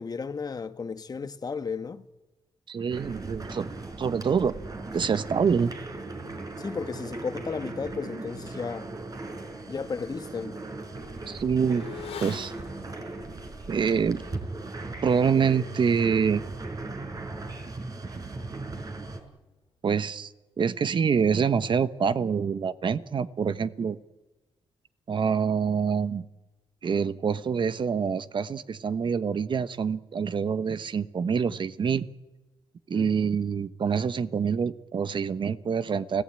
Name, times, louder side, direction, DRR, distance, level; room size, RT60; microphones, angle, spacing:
voice 1, 0.0-2.1 6.6-8.9 9.7-10.6 32.9-33.3, left 5 dB, 40° left, 1.3 m, -34 dB
voice 2, 2.7-3.7 4.0-4.6 4.9-5.7 11.3-11.9 12.2-12.5 13.7-14.2 15.0-16.5 19.8-20.3 20.6-24.0 25.1-26.2 26.8-32.1 32.9-36.2, right 6 dB, 55° right, 1.1 m, -26 dB
sound 1, 2.9-19.2, right 2 dB, 40° right, 4.6 m, -38 dB
Motorcycle / Accelerating revving vroom, 10.0-19.5 19.7-19.9, left 8 dB, 90° left, 3.8 m, -48 dB
30.0 x 16.0 x 9.0 m
cardioid pair, 80°, 10 cm